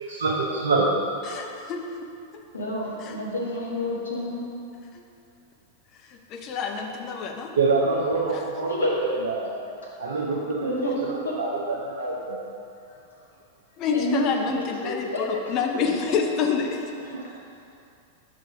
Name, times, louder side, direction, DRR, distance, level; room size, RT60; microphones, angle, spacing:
voice 1, 0.1-0.9 7.6-9.5 10.0-12.4 17.1-17.3, right 3 dB, 70° right, -3 dB, 0.6 m, -26 dB
voice 2, 1.2-1.8 3.0-3.2 4.9-5.0 6.0-7.5 8.3-8.4 13.8-16.9, left 6 dB, 35° left, 3 dB, 0.6 m, -28 dB
voice 3, 2.5-4.5 8.7-8.9 10.6-11.3 12.9-13.2 13.9-15.2 15.5-15.6 16.1-16.2 17.0-17.3, left 1 dB, 75° left, -4 dB, 1.2 m, -30 dB
5.6 x 3.8 x 4.8 m, 2.5 s
figure-of-eight pair, 90°, 0 cm